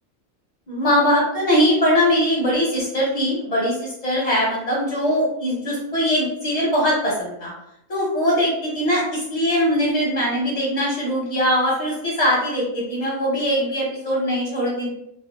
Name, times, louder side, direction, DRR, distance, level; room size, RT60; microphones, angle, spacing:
voice 1, 0.7-7.5 7.9-14.9, equal, 35° left, -6 dB, 0.7 m, -21 dB
3.4 x 2.1 x 2.3 m, 0.80 s
omnidirectional pair, 1.5 m